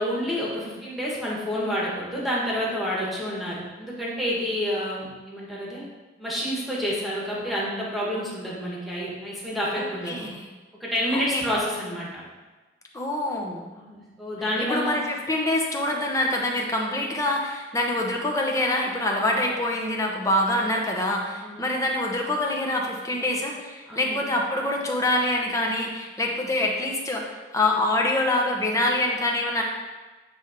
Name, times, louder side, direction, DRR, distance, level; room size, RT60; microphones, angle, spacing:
voice 1, 0.0-5.8 6.2-10.2 10.8-12.2 13.7-15.0 21.4-21.6 23.9-24.2, equal, ahead, -6 dB, 1.6 m, -29 dB
voice 2, 9.8-10.4 11.1-11.4 12.9-13.6 14.7-29.6, left 1 dB, 15° left, 0 dB, 0.9 m, -25 dB
9.9 x 3.4 x 5.1 m, 1.3 s
head